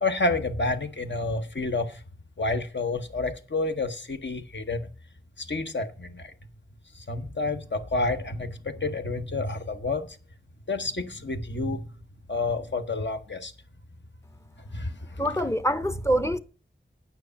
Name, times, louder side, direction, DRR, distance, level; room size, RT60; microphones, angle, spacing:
voice 1, 0.0-2.0 2.4-4.9 5.4-6.3 6.9-10.1 10.7-11.9 12.3-13.5 14.7-15.3, left 3 dB, 65° left, 1.1 m, -29 dB
voice 2, 15.2-16.4, equal, 15° left, 0.6 m, -25 dB
9.5 x 5.7 x 7.0 m
wide cardioid pair, 55°, 20 cm